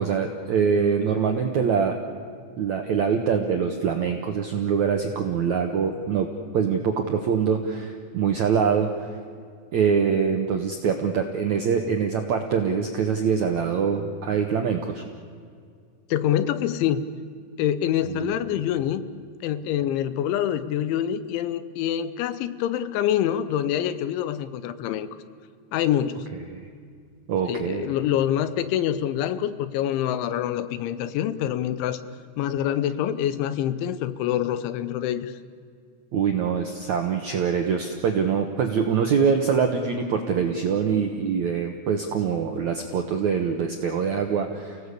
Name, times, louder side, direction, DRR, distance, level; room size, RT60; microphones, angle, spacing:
voice 1, 0.0-2.0 2.6-6.3 6.5-9.1 9.7-15.0 18.1-18.3 26.5-26.7 27.3-27.9 36.1-44.8, right 6 dB, 70° right, 4 dB, 1.7 m, -24 dB
voice 2, 16.1-17.0 17.6-19.0 19.4-25.1 25.7-26.3 27.5-32.0 32.4-35.3, left 10 dB, 85° left, 13 dB, 3.4 m, -26 dB
30.0 x 17.5 x 8.3 m, 2.2 s
omnidirectional pair, 5.3 m